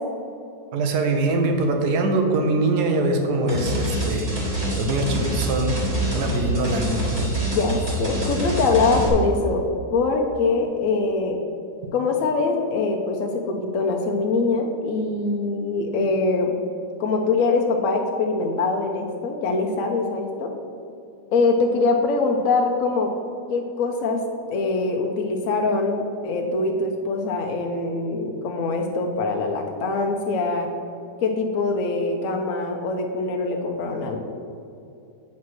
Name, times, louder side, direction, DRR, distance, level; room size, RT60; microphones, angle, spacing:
voice 1, 0.7-5.8 6.1-7.3, right 2 dB, 65° right, 4 dB, 1.4 m, -23 dB
sound 1, 3.5-9.1, right 1 dB, 25° right, 1.8 m, -26 dB
voice 2, 7.4-9.6 9.9-11.4 11.9-16.5 17.0-20.5 21.3-23.1 23.5-24.2 24.5-30.7 31.2-34.2, left 3 dB, 65° left, 2 dB, 0.9 m, -23 dB
8.5 x 4.3 x 6.1 m, 2.6 s
omnidirectional pair, 1.9 m